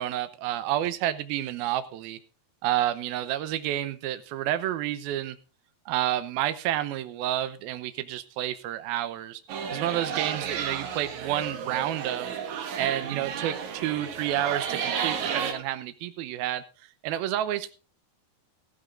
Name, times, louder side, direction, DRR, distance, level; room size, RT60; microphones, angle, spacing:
voice 1, 0.0-2.2 2.6-5.4 5.9-9.4 9.7-12.4 12.8-16.6 17.0-17.7, right 12 dB, 80° right, 12 dB, 2.7 m, -29 dB
sound 1, 9.5-15.5, right 7 dB, 60° right, 2.5 m, -32 dB
15.0 x 15.0 x 2.5 m, 0.34 s
omnidirectional pair, 4.3 m